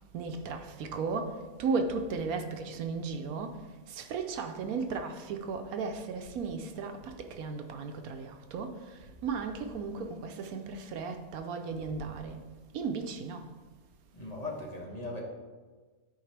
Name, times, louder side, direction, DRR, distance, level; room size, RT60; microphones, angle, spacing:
voice 1, 0.1-3.6 3.9-12.4 12.7-13.4, right 4 dB, 75° right, 1.1 m, -35 dB
voice 2, 14.1-15.2, left 2 dB, 25° left, 1.3 m, -38 dB
13.0 x 4.7 x 3.3 m
omnidirectional pair, 1.6 m